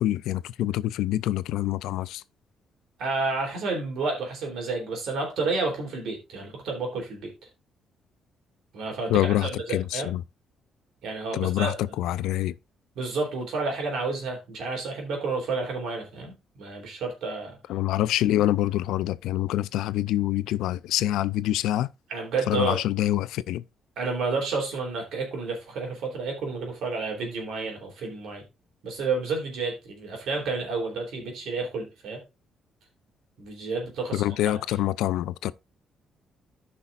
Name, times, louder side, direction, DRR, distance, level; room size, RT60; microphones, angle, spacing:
voice 1, 0.0-2.2 9.1-10.2 11.3-12.6 17.7-21.9 22.5-23.6 34.1-35.5, left 14 dB, 90° left, 0.3 m, -26 dB
voice 2, 3.0-7.3 8.7-10.1 11.0-11.8 12.9-17.6 22.1-22.8 24.0-28.4 28.8-32.2 33.4-34.3, right 3 dB, 80° right, 3.3 m, -30 dB
14.0 x 5.6 x 2.5 m
cardioid pair, 90°, 0 cm